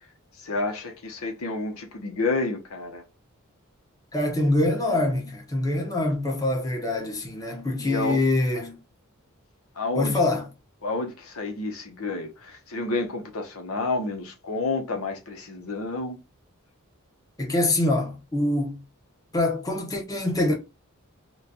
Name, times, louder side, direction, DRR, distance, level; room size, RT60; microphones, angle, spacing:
voice 1, 0.4-3.0 7.8-8.2 9.8-10.1 10.8-16.2, left 3 dB, 85° left, 0.8 m, -30 dB
voice 2, 4.1-8.8 9.9-10.5 17.4-18.8 19.3-20.5, left 2 dB, 15° left, 0.8 m, -24 dB
3.1 x 2.2 x 3.8 m
head